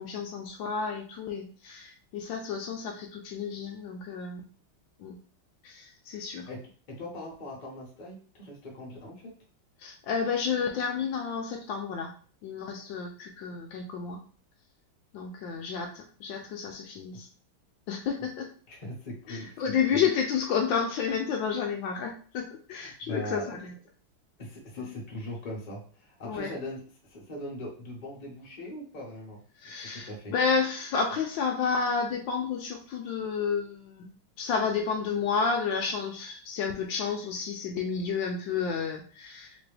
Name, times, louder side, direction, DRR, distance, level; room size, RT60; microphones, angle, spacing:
voice 1, 0.0-4.4 5.0-5.2 5.6-6.5 9.8-12.1 12.4-14.2 15.1-17.3 17.9-18.5 19.3-23.7 24.8-24.9 26.2-26.5 29.6-34.1 34.4-39.6, left 6 dB, 75° left, 3 dB, 1.2 m, -31 dB
voice 2, 6.9-9.3 17.1-17.2 18.7-19.6 19.9-20.1 22.7-23.6 24.4-29.4 29.7-30.3, equal, 35° left, -2 dB, 0.8 m, -40 dB
3.4 x 3.0 x 3.3 m, 0.42 s
omnidirectional pair, 2.3 m